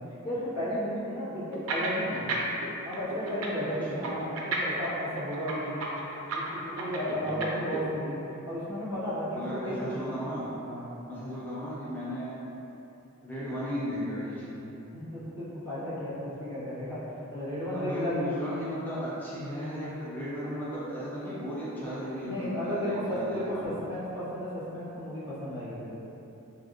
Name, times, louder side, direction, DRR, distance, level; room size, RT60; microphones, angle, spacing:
voice 1, 0.2-2.2 2.8-5.8 6.3-8.2 8.5-9.4 9.6-10.1 10.7-10.8 14.9-17.0 17.3-18.3 22.2-25.9, equal, 85° left, -12 dB, 1.3 m, -33 dB
sound 1, 1.5-2.7 2.9-7.8, right 3 dB, 70° right, 0.4 m, -32 dB
voice 2, 7.2-7.6 9.3-10.5 11.1-12.4 13.2-14.7 17.7-23.8, equal, 10° left, -10 dB, 0.4 m, -35 dB
3.3 x 2.5 x 2.5 m, 2.9 s
head